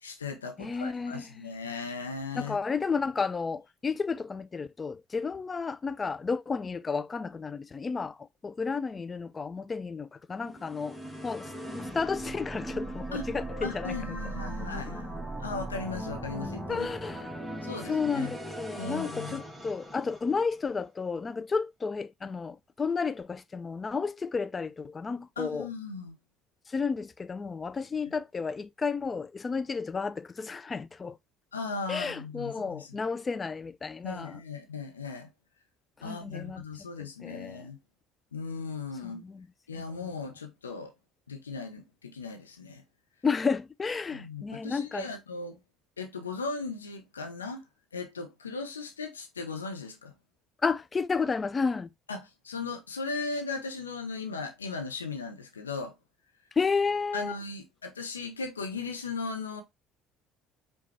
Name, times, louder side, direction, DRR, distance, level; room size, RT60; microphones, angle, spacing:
voice 1, 0.0-2.6 13.1-13.2 13.6-16.9 17.6-18.4 18.8-19.4 25.4-26.2 28.1-28.2 31.5-32.9 34.0-35.3 36.0-37.8 38.3-39.2 39.7-40.9 41.3-42.8 44.1-45.6 46.0-47.6 47.9-50.1 52.1-55.9 57.1-59.6, left 4 dB, 90° left, 0.7 m, -37 dB
voice 2, 0.6-1.5 2.3-11.0 11.2-14.0 16.7-17.4 17.9-25.7 26.7-31.2 31.9-34.4 36.0-36.6 37.0-37.7 39.0-39.5 39.7-40.1 43.2-45.1 50.6-51.9 56.6-57.4, left 5 dB, 30° left, 0.3 m, -32 dB
sound 1, 10.4-20.6, right 1 dB, 5° right, 1.3 m, -39 dB
5.2 x 2.3 x 3.2 m
hypercardioid pair, 55°, 0 cm